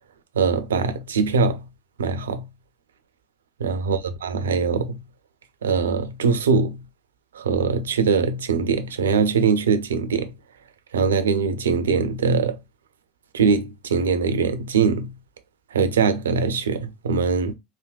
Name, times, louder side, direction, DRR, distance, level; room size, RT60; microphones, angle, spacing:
voice 1, 0.3-1.7 2.0-2.5 3.6-5.0 5.6-6.8 7.3-10.3 10.9-12.6 13.3-15.2 15.7-17.5, right 5 dB, 80° right, 0.4 m, -22 dB
3.5 x 2.1 x 2.2 m
figure-of-eight pair, 75°, 0 cm